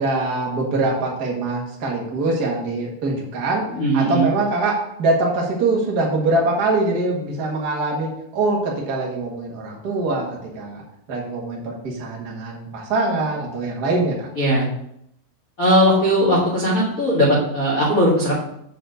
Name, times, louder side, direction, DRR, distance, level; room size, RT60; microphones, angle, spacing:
voice 1, 0.0-3.6 3.9-10.8 11.1-14.3, right 2 dB, 85° right, -2 dB, 0.8 m, -23 dB
voice 2, 3.7-4.3 14.4-14.7 15.6-18.3, equal, 85° left, -6 dB, 0.7 m, -18 dB
6.6 x 4.6 x 6.4 m, 0.76 s
omnidirectional pair, 4.7 m